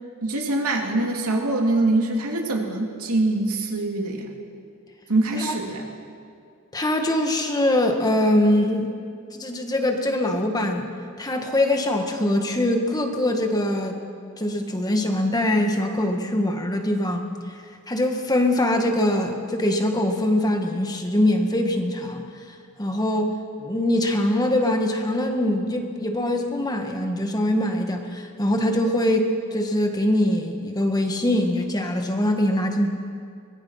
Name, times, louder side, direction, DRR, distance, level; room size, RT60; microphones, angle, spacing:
voice 1, 0.2-4.4 5.1-5.9, right 2 dB, 85° right, 1 dB, 2.9 m, -24 dB
voice 2, 6.7-8.9 9.3-10.9 11.2-14.0 14.4-17.2 17.9-32.9, left 1 dB, 15° left, 3 dB, 1.7 m, -23 dB
24.0 x 20.0 x 5.8 m, 2.3 s
head